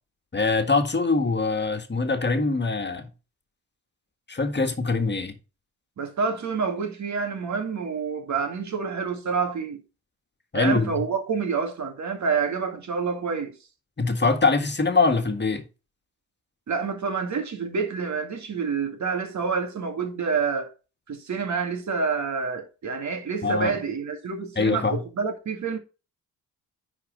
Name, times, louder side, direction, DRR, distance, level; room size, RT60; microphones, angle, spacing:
voice 1, 0.3-3.1 4.3-5.4 10.5-10.9 14.0-15.6 23.4-23.7 24.5-25.0, left 3 dB, 30° left, 1.7 m, -23 dB
voice 2, 6.0-9.8 10.5-13.6 16.7-20.7 21.1-25.8, right 5 dB, 55° right, 2.0 m, -28 dB
9.7 x 4.4 x 4.0 m
supercardioid pair, 50°, 35 cm